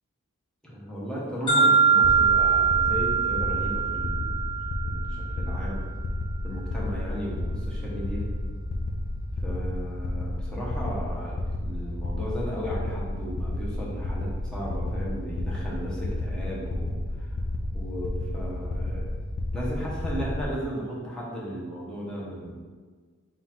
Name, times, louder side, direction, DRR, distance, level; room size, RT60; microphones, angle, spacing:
voice 1, 0.6-4.5 4.8-5.8 6.4-8.2 9.4-17.4 17.7-19.1 19.5-22.6, equal, 5° left, -6 dB, 0.8 m, -35 dB
sound 1, 1.5-5.4, right 6 dB, 25° left, 1.3 m, -22 dB
sound 2, 2.0-20.4, left 1 dB, 50° left, 0.4 m, -31 dB
3.9 x 2.4 x 4.3 m, 1.5 s
head